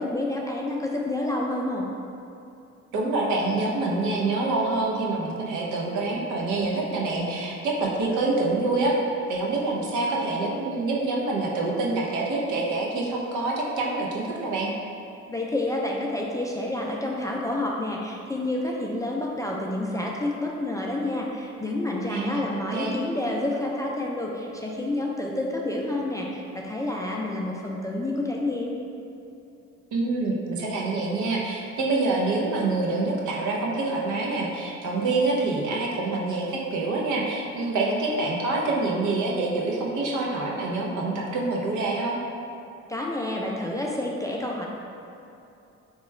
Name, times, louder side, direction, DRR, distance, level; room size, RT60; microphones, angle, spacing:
voice 1, 0.0-1.9 15.3-28.8 42.9-44.7, left 1 dB, 10° left, -2 dB, 0.3 m, -29 dB
voice 2, 2.9-8.9 9.3-14.7 22.1-22.4 22.7-23.0 29.9-42.2, right 3 dB, 75° right, -2 dB, 0.7 m, -26 dB
2.9 x 2.3 x 4.2 m, 2.7 s
cardioid pair, 90°, 30 cm